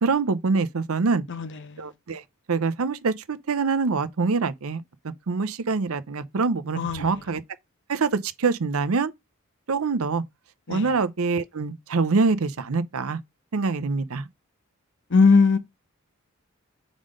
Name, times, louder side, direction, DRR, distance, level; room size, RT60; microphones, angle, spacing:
voice 1, 0.0-1.2 1.8-2.2 2.5-4.8 5.3-7.4 7.9-9.1 9.7-10.2 10.7-13.2 13.5-14.3, right 4 dB, 75° right, 0.6 m, -25 dB
voice 2, 1.3-1.9 6.7-7.2 10.7-10.9 15.1-15.6, left 4 dB, 60° left, 0.9 m, -20 dB
5.0 x 3.8 x 5.1 m
head